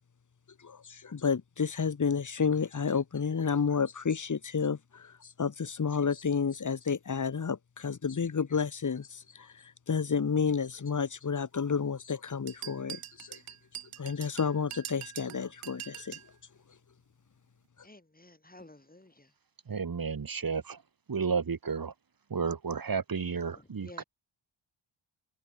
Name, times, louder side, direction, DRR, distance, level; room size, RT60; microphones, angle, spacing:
voice 1, 0.6-13.4 14.0-16.2, left 6 dB, 35° left, 1.0 m, -31 dB
sound 1, 12.5-16.3, right 12 dB, 85° right, 0.7 m, -44 dB
voice 2, 17.8-19.4 23.5-24.0, left 2 dB, 15° left, 3.8 m, -53 dB
voice 3, 19.7-20.8 21.1-21.9 22.3-24.0, right 5 dB, 45° right, 1.2 m, -32 dB
wide cardioid pair, 105°, 50 cm